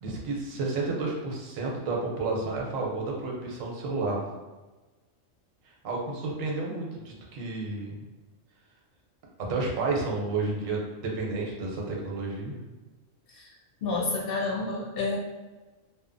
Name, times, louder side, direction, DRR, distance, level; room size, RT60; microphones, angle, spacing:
voice 1, 0.0-4.2 5.8-8.0 9.5-12.6, right 3 dB, 90° right, -2 dB, 1.1 m, -31 dB
voice 2, 13.8-15.2, left 3 dB, 60° left, -4 dB, 0.7 m, -29 dB
2.8 x 2.1 x 2.5 m, 1.2 s
omnidirectional pair, 1.3 m